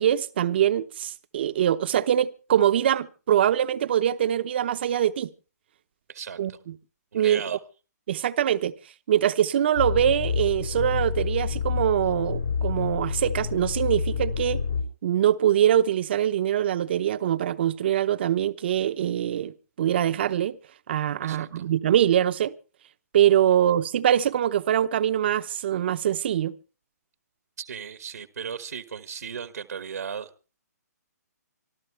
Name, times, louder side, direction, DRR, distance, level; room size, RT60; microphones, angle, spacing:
voice 1, 0.0-5.3 6.4-6.5 7.1-7.4 8.1-8.7 9.1-14.6 15.0-20.6 20.9-22.5 23.1-26.5, right 10 dB, 40° right, 0.8 m, -23 dB
voice 2, 6.1-6.6 7.1-7.6 21.2-21.7 27.6-30.3, right 7 dB, 75° right, 1.3 m, -36 dB
sound 1, 9.8-14.8, left 5 dB, 80° left, 4.7 m, -28 dB
25.5 x 13.5 x 3.3 m
hypercardioid pair, 165°, 9 cm